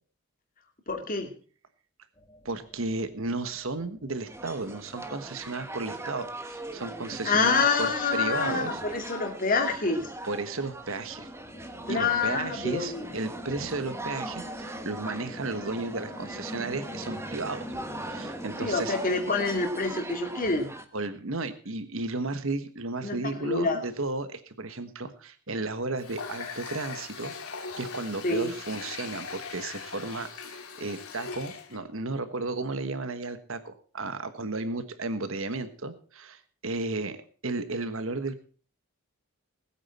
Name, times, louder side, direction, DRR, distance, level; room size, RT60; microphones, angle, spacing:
voice 1, 0.9-1.3 7.2-10.1 11.9-13.1 18.6-20.7 23.0-23.8 28.2-28.5, left 4 dB, 40° left, 2 dB, 2.4 m, -27 dB
sound 1, 2.2-19.7, left 1 dB, 20° left, 2.4 m, -46 dB
voice 2, 2.4-8.8 10.3-11.3 11.8-17.6 18.0-18.9 20.9-27.3 27.8-37.2 37.4-38.4, right 3 dB, 65° right, 11 dB, 1.3 m, -34 dB
sound 2, 4.3-20.8, right 1 dB, 10° right, 1.2 m, -40 dB
Water tap faucet, 26.0-31.8, left 5 dB, 80° left, 2.5 m, -40 dB
20.0 x 9.0 x 4.3 m, 0.40 s
head